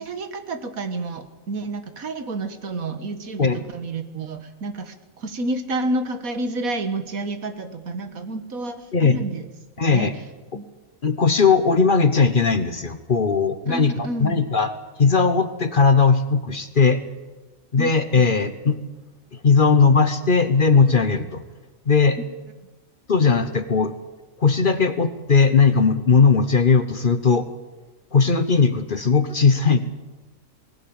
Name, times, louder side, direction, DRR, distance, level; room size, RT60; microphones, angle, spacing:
voice 1, 0.0-9.5 9.8-10.1 10.5-10.7 13.7-14.4 17.8-18.3, right 2 dB, 75° right, 9 dB, 1.9 m, -30 dB
voice 2, 9.8-10.1 11.0-14.7 15.0-17.0 17.7-18.8 19.4-21.4 21.9-22.2 23.1-23.9 24.4-27.4 28.1-29.8, left 5 dB, 40° left, 11 dB, 1.1 m, -18 dB
19.5 x 16.5 x 8.8 m, 1.1 s
omnidirectional pair, 1.5 m